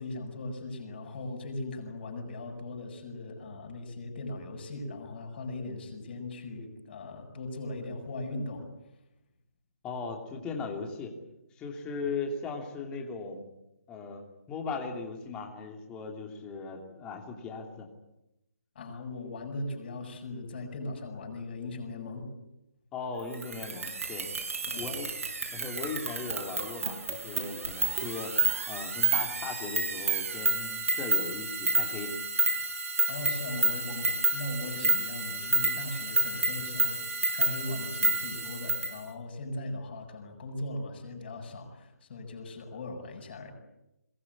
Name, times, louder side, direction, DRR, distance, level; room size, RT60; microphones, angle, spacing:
voice 1, 0.0-8.7 18.7-22.3 24.7-24.9 33.1-37.0 37.3-43.5, left 2 dB, 40° left, 4 dB, 7.9 m, -39 dB
voice 2, 9.8-11.1 11.6-13.4 13.9-17.9 22.9-24.3 24.8-25.1 25.5-28.4 28.7-32.1, left 4 dB, 10° left, 3 dB, 2.9 m, -38 dB
sound 1, 23.3-39.0, right 3 dB, 60° right, 6.1 m, -30 dB
22.5 x 20.5 x 9.9 m, 0.90 s
hypercardioid pair, 165°, 9 cm